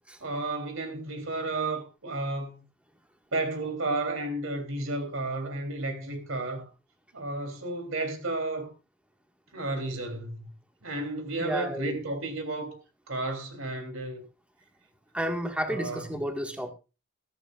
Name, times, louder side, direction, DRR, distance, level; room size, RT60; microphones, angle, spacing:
voice 1, 0.2-2.6 3.3-6.7 7.1-8.7 9.5-10.5 10.8-12.8 13.1-14.2 15.7-16.0, right 2 dB, 75° right, 3.3 m, -32 dB
voice 2, 11.4-12.0 15.1-16.7, equal, 5° right, 1.7 m, -31 dB
15.0 x 14.5 x 2.5 m
head